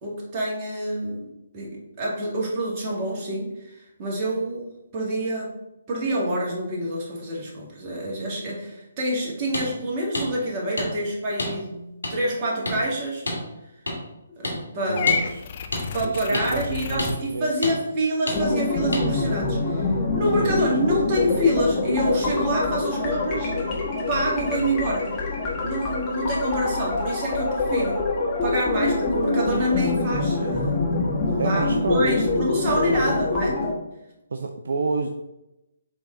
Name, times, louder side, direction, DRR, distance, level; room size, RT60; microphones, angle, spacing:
voice 1, 0.0-1.3 1.5-5.5 5.9-13.4 14.4-15.2 15.9-23.8 24.1-25.1 25.6-28.0 28.4-30.8 31.2-33.6, right 1 dB, 30° right, -4 dB, 2.2 m, -27 dB
sound 1, 9.5-9.7 10.1-10.3 10.8-10.9 11.4-11.5 12.0-12.1 12.6-12.8 13.3-13.4 13.9-14.0 14.4-14.6 15.1-15.2 15.7-15.8 16.3-16.5 17.0-17.1 17.6-17.7 18.3-18.4 18.9-19.0, left 1 dB, 80° left, 2.4 m, -27 dB
voice 2, 14.9-15.5 16.0-17.5 20.2-21.0 31.4-32.1 32.5-33.2 34.3-35.1, right 3 dB, 60° right, 4 dB, 0.5 m, -29 dB
Purr / Meow, 15.0-17.2, left 6 dB, 40° left, 0.6 m, -28 dB
sound 2, 18.3-33.7, left 3 dB, 20° left, 1.7 m, -25 dB
7.8 x 3.8 x 3.9 m, 0.91 s
figure-of-eight pair, 135°, 0 cm